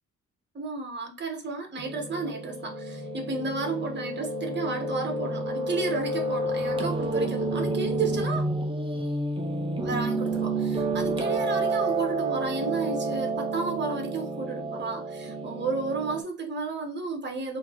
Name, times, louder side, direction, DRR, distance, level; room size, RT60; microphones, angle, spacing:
voice 1, 0.5-8.5 9.8-17.6, right 3 dB, 40° right, 1.1 m, -32 dB
Piano, 1.8-16.2, right 2 dB, 20° right, 0.7 m, -30 dB
4.1 x 2.7 x 2.9 m
cardioid pair, 115°, 29 cm